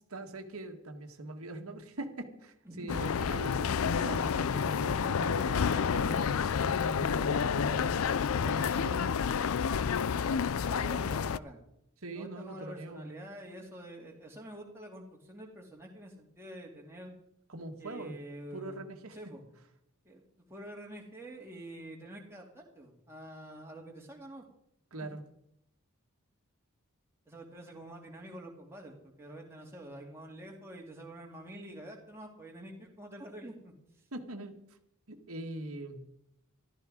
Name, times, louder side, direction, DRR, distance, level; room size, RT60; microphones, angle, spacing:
voice 1, 0.1-8.0 8.4-9.2 12.0-13.1 17.5-18.2 18.5-19.2 24.9-25.2 34.1-34.5 35.1-36.0, right 2 dB, 70° right, 4 dB, 1.7 m, -42 dB
voice 2, 2.6-3.1 10.0-10.3 10.6-11.6 12.1-17.1 17.8-18.8 19.1-19.4 20.0-24.4 25.0-25.1 27.3-33.7, right 1 dB, 10° right, -1 dB, 2.6 m, -47 dB
sound 1, 2.9-11.4, left 6 dB, 65° left, 0.4 m, -29 dB
14.0 x 13.0 x 4.9 m, 0.78 s
head